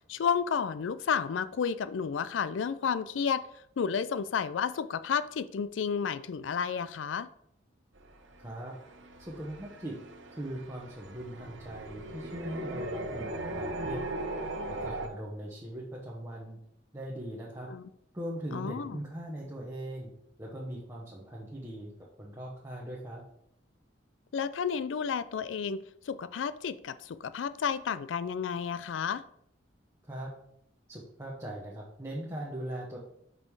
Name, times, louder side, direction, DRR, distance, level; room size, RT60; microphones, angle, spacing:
voice 1, 0.1-3.4 3.8-7.3 17.7-17.9 18.5-19.0 24.3-25.8 26.1-29.2, left 6 dB, 90° left, 15 dB, 0.4 m, -31 dB
sound 1, 8.0-15.1, right 1 dB, 85° right, 1.0 m, -39 dB
voice 2, 8.4-8.7 9.3-10.0 10.4-14.0 14.7-16.6 16.9-17.7 18.1-20.1 20.4-21.9 22.2-23.2 30.1-30.3 30.9-33.0, right 1 dB, 15° right, -5 dB, 1.1 m, -40 dB
5.5 x 5.2 x 4.7 m, 0.72 s
head